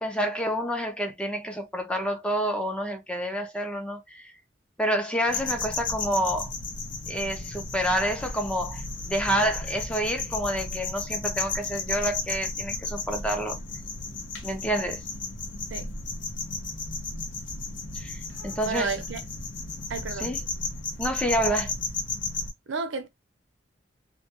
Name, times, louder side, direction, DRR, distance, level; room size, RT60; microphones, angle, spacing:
voice 1, 0.0-4.3 4.8-6.5 7.1-13.6 14.4-15.0 17.9-18.9 20.2-20.4 21.0-21.7, equal, 5° left, 0.4 m, -28 dB
sound 1, 5.3-22.5, left 3 dB, 70° left, 0.6 m, -34 dB
voice 2, 18.6-19.2 19.9-20.3 22.7-23.1, right 4 dB, 80° right, 0.5 m, -31 dB
2.2 x 2.1 x 2.8 m
head